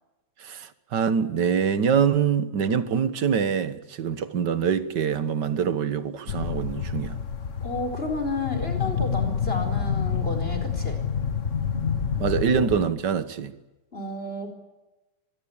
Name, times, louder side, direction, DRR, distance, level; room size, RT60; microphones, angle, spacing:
voice 1, 0.4-7.2 12.2-13.5, right 7 dB, 50° right, 1.3 m, -24 dB
sound 1, 6.3-12.9, left 6 dB, 45° left, 1.0 m, -28 dB
voice 2, 7.6-11.0 13.9-14.5, left 2 dB, 20° left, 4.6 m, -31 dB
25.0 x 20.0 x 8.7 m
omnidirectional pair, 3.4 m